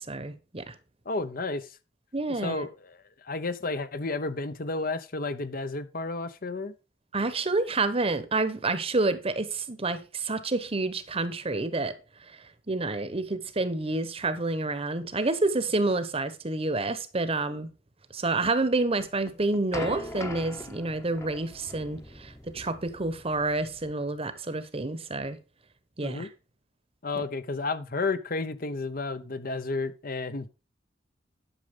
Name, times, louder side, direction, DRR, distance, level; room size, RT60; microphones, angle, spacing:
voice 1, 0.1-0.7 2.1-2.7 7.1-11.9 12.7-17.7 18.1-25.4 26.0-26.3, right 2 dB, 30° right, 1.1 m, -28 dB
voice 2, 1.1-1.7 2.4-6.7 26.0-26.3 27.0-30.5, left 3 dB, 50° left, 0.9 m, -32 dB
sound 1, 19.0-23.9, left 1 dB, 15° left, 1.0 m, -41 dB
11.5 x 6.5 x 5.1 m
head